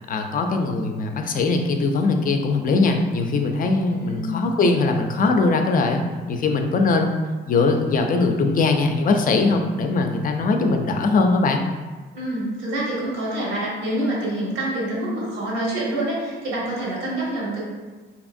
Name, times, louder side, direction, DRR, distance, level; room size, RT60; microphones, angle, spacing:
voice 1, 0.1-7.2 7.5-11.6, left 3 dB, 45° left, 4 dB, 0.4 m, -21 dB
voice 2, 3.9-4.3 12.1-17.6, right 1 dB, 85° right, -5 dB, 1.1 m, -26 dB
2.8 x 2.5 x 2.5 m, 1.3 s
cardioid pair, 90°, 20 cm